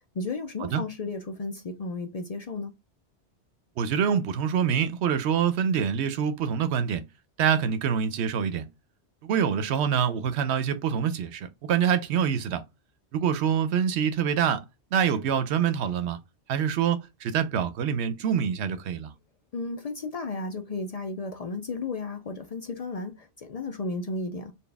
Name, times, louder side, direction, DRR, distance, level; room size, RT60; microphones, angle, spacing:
voice 1, 0.1-2.7 19.5-24.5, left 3 dB, 60° left, 0.4 m, -34 dB
voice 2, 3.8-7.0 7.4-8.7 9.2-12.6 13.1-14.6 14.9-16.2 16.5-19.1, right 8 dB, 75° right, 0.9 m, -25 dB
4.1 x 2.2 x 3.3 m
omnidirectional pair, 1.2 m